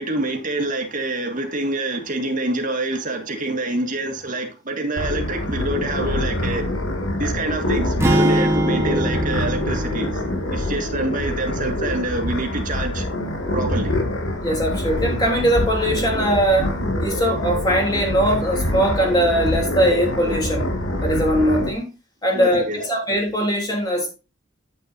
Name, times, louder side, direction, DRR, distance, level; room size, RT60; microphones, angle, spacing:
voice 1, 0.0-6.7 7.2-10.1 10.5-13.1 13.5-14.0 22.3-22.8, right 2 dB, 40° right, 1.9 m, -26 dB
sound 1, 5.0-21.7, left 1 dB, 75° left, 2.0 m, -25 dB
sound 2, 8.0-12.2, right 1 dB, 15° right, 1.3 m, -24 dB
voice 2, 14.4-16.7 17.0-20.7 21.0-21.9 22.2-24.1, equal, 20° left, 3.1 m, -20 dB
9.6 x 8.3 x 2.6 m
head